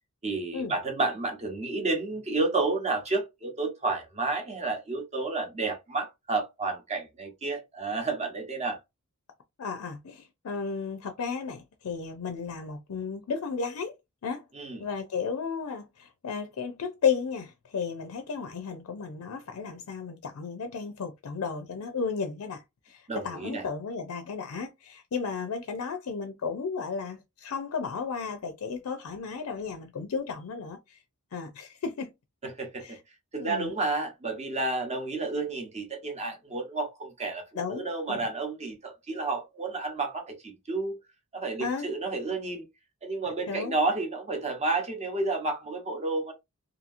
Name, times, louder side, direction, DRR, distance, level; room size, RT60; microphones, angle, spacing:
voice 1, 0.2-8.8 14.5-14.8 23.1-23.7 32.4-33.0 33.3-41.0 41.3-42.6 43.0-46.3, right 3 dB, 30° right, 0.8 m, -31 dB
voice 2, 9.6-13.9 14.2-14.4 14.8-31.0 31.3-32.1 32.8-33.0 33.4-33.7 37.6-38.2 41.6-41.9 43.5-43.7, left 5 dB, 70° left, 0.4 m, -34 dB
2.8 x 2.6 x 2.5 m
head